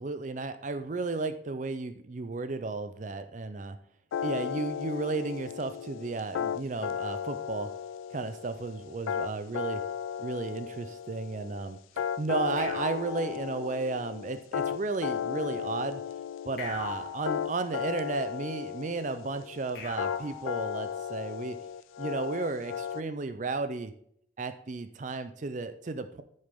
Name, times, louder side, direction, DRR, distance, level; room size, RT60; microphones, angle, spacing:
voice 1, 0.0-3.8 4.2-7.7 8.1-9.8 10.2-11.8 12.2-16.0 16.4-21.6 22.0-23.9 24.4-26.2, right 3 dB, 40° right, 10 dB, 0.4 m, -33 dB
sound 1, 4.1-23.0, left 8 dB, 85° left, 0.3 m, -35 dB
sound 2, 12.6-14.2 16.6-18.2 19.7-21.3, left 5 dB, 55° left, 2.3 m, -42 dB
9.8 x 6.4 x 3.6 m, 0.68 s
head